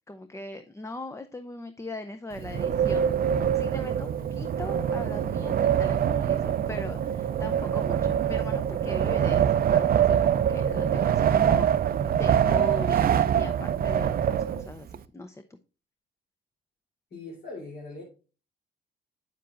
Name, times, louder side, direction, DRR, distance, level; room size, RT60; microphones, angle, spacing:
voice 1, 0.1-3.2 3.5-15.6, left 2 dB, 15° left, 0.6 m, -39 dB
Wind, 2.3-15.0, right 9 dB, 50° right, 0.5 m, -24 dB
voice 2, 17.1-18.0, left 3 dB, 60° left, 3.6 m, -40 dB
8.3 x 7.4 x 2.5 m
cardioid pair, 90°, 20 cm